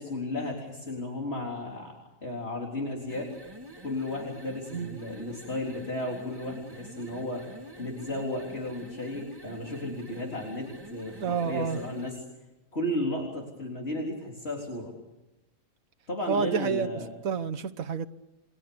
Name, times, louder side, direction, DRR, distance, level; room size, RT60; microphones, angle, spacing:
voice 1, 0.0-3.3 3.8-7.5 7.8-12.2 12.7-14.9 16.1-17.1, left 1 dB, 50° left, 4.1 m, -34 dB
sound 1, 3.0-12.2, equal, 15° right, 1.8 m, -46 dB
voice 2, 11.2-11.8 16.3-17.0 17.2-18.1, right 6 dB, 80° right, 1.5 m, -29 dB
28.5 x 23.0 x 7.1 m
omnidirectional pair, 1.4 m